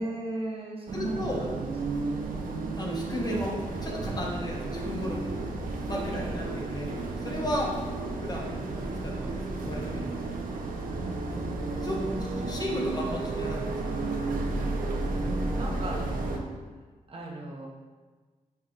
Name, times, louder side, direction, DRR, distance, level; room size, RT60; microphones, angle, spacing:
voice 1, 0.0-2.1 6.1-6.4 10.8-11.6 12.0-12.1 15.2-16.5 17.1-17.7, right 1 dB, 40° right, -2 dB, 0.7 m, -37 dB
voice 2, 0.9-1.4 2.3-5.4 5.9-7.8 8.2-8.5 9.0-10.1 11.8-12.0 12.5-13.7, left 1 dB, 30° left, -2 dB, 0.7 m, -34 dB
sound 1, 0.9-16.4, right 3 dB, 75° right, 0.5 m, -32 dB
5.4 x 2.3 x 3.7 m, 1.4 s
wide cardioid pair, 105°, 14 cm